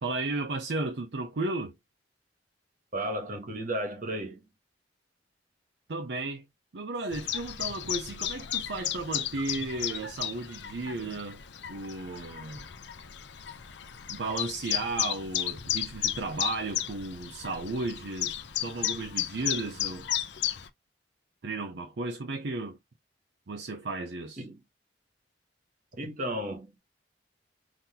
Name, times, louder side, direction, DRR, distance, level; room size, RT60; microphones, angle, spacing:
voice 1, 0.0-1.7 5.9-6.5 6.7-11.4 11.7-12.7 14.1-18.3 18.6-20.1 21.4-22.8 23.5-24.4, right 2 dB, 70° right, 0.6 m, -34 dB
voice 2, 2.9-4.4 24.4-24.6 25.9-26.8, right 1 dB, 50° right, 1.2 m, -34 dB
Chirp tweet, 7.1-20.7, left 11 dB, 70° left, 0.6 m, -34 dB
3.8 x 2.8 x 2.7 m
head